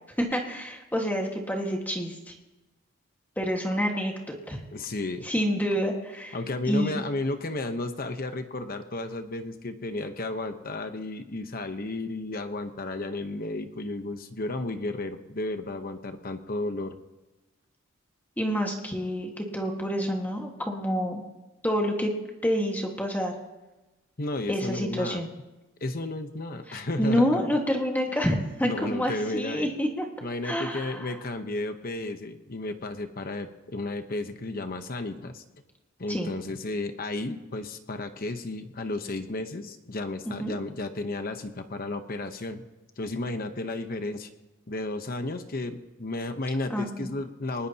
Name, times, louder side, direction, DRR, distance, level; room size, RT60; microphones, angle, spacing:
voice 1, 0.2-2.3 3.4-4.6 5.2-6.4 6.7-7.0 18.4-21.2 21.6-22.1 22.4-23.3 24.5-25.3 26.7-30.1 30.4-31.1 36.1-36.3 40.2-40.6 46.7-47.1, equal, 10° left, 0 dB, 1.7 m, -28 dB
voice 2, 4.7-5.3 6.3-17.0 24.2-25.2 25.8-27.3 28.6-29.7 30.2-35.4 36.0-42.6 43.0-44.3 44.7-47.7, left 2 dB, 45° left, 7 dB, 1.0 m, -33 dB
24.0 x 20.0 x 2.9 m, 1.1 s
head